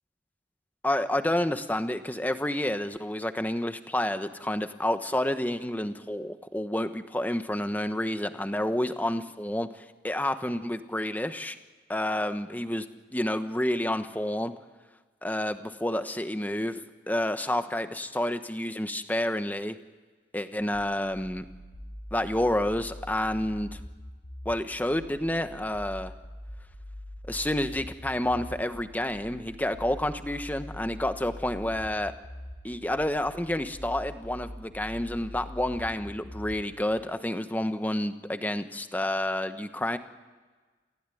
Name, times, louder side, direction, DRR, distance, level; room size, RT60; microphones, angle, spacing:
voice 1, 0.8-11.6 11.9-12.9 13.1-14.5 15.2-16.8 17.1-19.8 20.3-21.4 22.1-23.8 24.4-26.1 27.3-32.1 32.6-40.0, left 1 dB, 10° left, 9 dB, 1.1 m, -29 dB
sound 1, 20.7-36.7, left 1 dB, 75° left, 4.0 m, -43 dB
28.5 x 15.5 x 9.3 m, 1.3 s
head